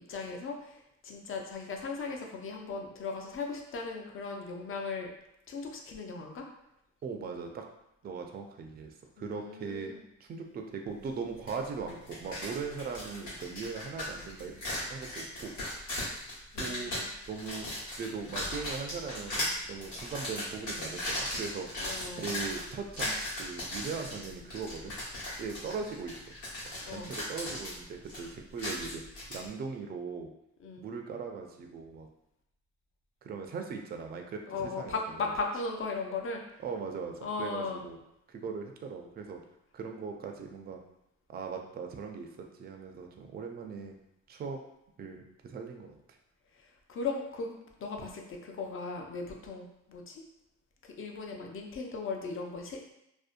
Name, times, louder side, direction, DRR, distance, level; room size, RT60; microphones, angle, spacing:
voice 1, 0.0-5.1 5.5-6.5 9.2-10.0 16.5-17.0 21.8-22.4 26.8-27.1 30.6-30.8 34.5-36.4 37.2-37.8 46.5-47.5 47.8-50.2 50.8-52.9, left 4 dB, 45° left, 2 dB, 0.5 m, -37 dB
voice 2, 7.0-7.7 8.0-9.9 10.2-14.6 14.9-15.5 16.6-16.9 17.3-21.7 22.1-24.9 25.4-26.2 26.9-29.0 29.3-30.3 30.8-32.1 33.2-35.0 36.6-38.0 38.3-39.4 39.7-40.8 41.3-43.9 44.3-44.6 45.0-46.0, right 5 dB, 35° right, 3 dB, 0.4 m, -39 dB
sound 1, 11.5-11.6 11.9-29.4, left 1 dB, 90° left, 1.2 m, -37 dB
2.6 x 2.1 x 2.4 m, 0.82 s
cardioid pair, 90°, 30 cm